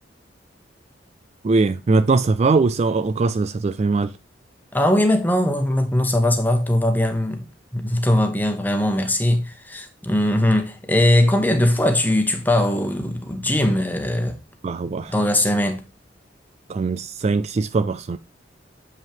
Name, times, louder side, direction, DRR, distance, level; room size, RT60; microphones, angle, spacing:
voice 1, 1.4-4.1 14.6-15.1 16.7-18.2, right 3 dB, 35° right, 0.3 m, -21 dB
voice 2, 4.7-7.4 7.7-14.4 15.1-15.8, left 1 dB, 10° left, 1.2 m, -20 dB
7.5 x 5.3 x 3.4 m
head